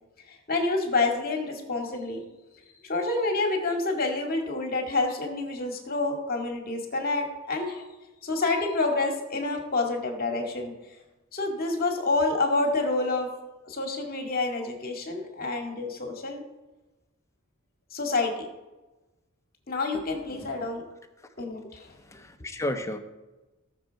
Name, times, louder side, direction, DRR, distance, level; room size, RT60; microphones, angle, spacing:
voice 1, 0.3-2.2 2.8-7.8 8.2-10.7 11.3-13.3 13.7-16.4 17.9-18.5 19.7-20.8 21.4-21.9, left 3 dB, 40° left, 3 dB, 2.2 m, -28 dB
voice 2, 19.9-20.5 21.2-21.3 21.9-23.0, left 1 dB, 15° left, 6 dB, 1.0 m, -34 dB
18.0 x 6.7 x 4.7 m, 1.1 s
head